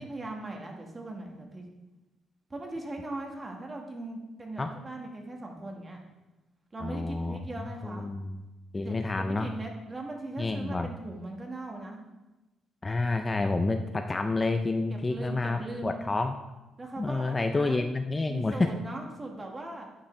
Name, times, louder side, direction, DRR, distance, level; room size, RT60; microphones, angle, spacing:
voice 1, 0.0-1.6 2.5-6.0 6.7-8.1 8.8-12.0 14.9-16.0 16.8-17.8 18.3-19.9, right 2 dB, 25° right, 1 dB, 1.6 m, -39 dB
voice 2, 6.8-8.4 8.7-9.5 10.4-10.9 12.8-16.4 17.0-18.7, left 3 dB, 25° left, 7 dB, 0.4 m, -29 dB
9.9 x 5.5 x 3.2 m, 1.1 s
cardioid pair, 90°, 0 cm